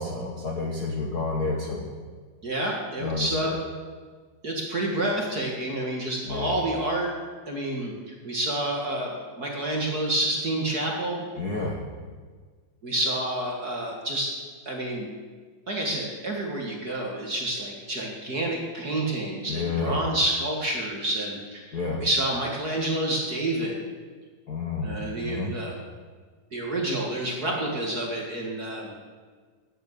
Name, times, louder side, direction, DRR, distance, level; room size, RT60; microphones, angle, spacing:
voice 1, 0.0-1.9 3.0-3.6 6.2-6.6 11.4-11.8 19.5-20.0 21.7-22.0 24.5-25.5, left 3 dB, 85° left, -2 dB, 0.8 m, -30 dB
voice 2, 2.4-3.5 4.4-7.1 7.5-11.2 12.8-14.3 14.6-15.1 15.7-23.8 24.8-25.7 26.5-28.9, right 1 dB, 40° right, -2 dB, 1.6 m, -29 dB
10.0 x 9.3 x 8.0 m, 1.5 s
omnidirectional pair, 3.8 m